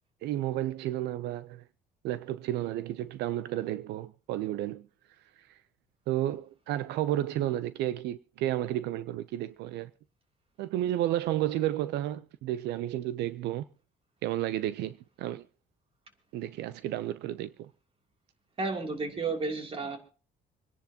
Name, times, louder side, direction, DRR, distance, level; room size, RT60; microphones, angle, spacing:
voice 1, 0.2-1.6 2.0-4.9 5.4-5.6 6.1-9.9 10.6-13.6 14.2-15.5 16.3-17.7, right 13 dB, 80° right, 0.6 m, -32 dB
voice 2, 18.6-20.0, right 3 dB, 35° right, 3.0 m, -32 dB
26.5 x 10.5 x 2.9 m
cardioid pair, 110°, 17 cm